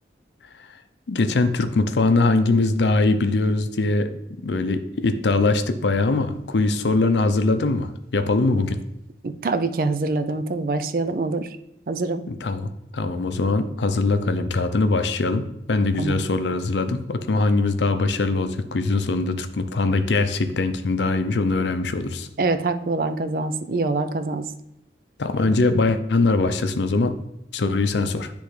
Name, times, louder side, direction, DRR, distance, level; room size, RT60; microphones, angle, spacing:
voice 1, 1.1-4.1 4.4-8.8 12.3-22.3 25.2-27.1 27.5-28.3, left 3 dB, 80° left, 9 dB, 0.5 m, -22 dB
voice 2, 9.2-11.5 11.9-12.2 16.0-16.3 22.4-24.4, right 3 dB, 50° right, 10 dB, 0.4 m, -25 dB
10.0 x 3.4 x 3.2 m, 0.83 s
head